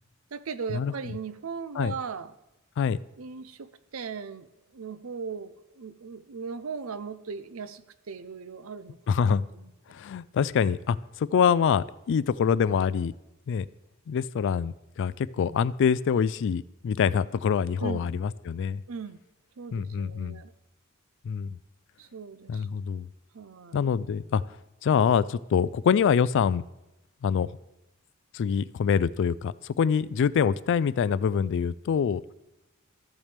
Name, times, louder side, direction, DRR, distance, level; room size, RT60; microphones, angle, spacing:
voice 1, 0.3-2.3 3.2-9.2 9.5-9.7 17.8-18.0 18.9-19.2 19.6-20.5 22.0-22.7 23.3-23.8, right 5 dB, 75° right, 13 dB, 0.6 m, -38 dB
voice 2, 9.1-9.4 9.9-13.1 13.5-13.7 14.1-18.8 19.7-20.4 21.2-21.6 22.5-23.1 23.7-24.4 24.8-26.6 27.2-27.5 28.3-32.2, left 7 dB, 60° left, 19 dB, 0.3 m, -25 dB
13.5 x 7.2 x 3.4 m, 0.94 s
head